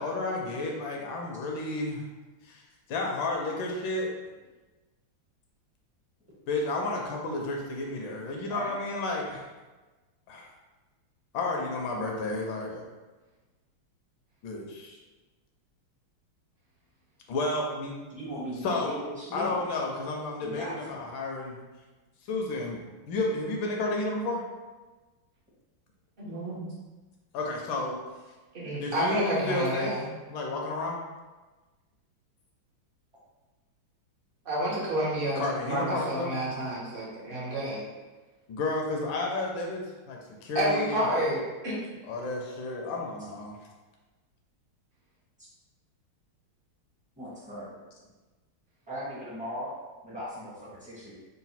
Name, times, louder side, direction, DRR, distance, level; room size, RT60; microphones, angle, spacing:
voice 1, 0.0-2.1 2.4-2.6 2.9-4.4 6.5-9.5 10.3-10.5 11.3-12.8 14.4-15.0 17.3-17.9 18.6-19.0 19.3-21.6 22.3-22.8 23.1-24.4 27.3-28.0 28.8-29.9 30.3-31.0 35.4-36.4 38.5-41.0 42.0-43.6, left 2 dB, 75° left, 0 dB, 1.3 m, -31 dB
voice 2, 8.5-8.8 18.1-19.6 20.4-21.0 47.2-47.7 48.9-49.8 50.0-51.2, equal, 5° right, -9 dB, 0.6 m, -38 dB
voice 3, 26.2-26.6 28.5-30.1 34.4-35.4 35.7-37.9 40.5-41.8, right 1 dB, 45° right, -6 dB, 0.7 m, -29 dB
3.9 x 2.2 x 4.1 m, 1.2 s
omnidirectional pair, 2.2 m